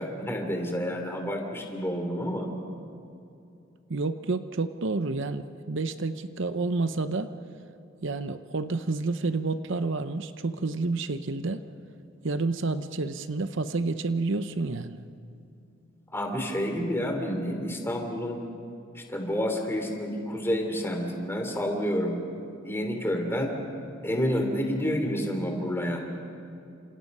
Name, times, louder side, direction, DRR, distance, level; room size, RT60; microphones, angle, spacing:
voice 1, 0.0-2.5 16.1-18.4 18.9-22.2 22.6-23.5 24.0-26.0, equal, 10° left, 3 dB, 3.3 m, -29 dB
voice 2, 3.9-7.3 8.0-11.6 12.2-15.0, right 3 dB, 65° right, 10 dB, 0.8 m, -29 dB
29.5 x 27.0 x 5.5 m, 2.6 s
head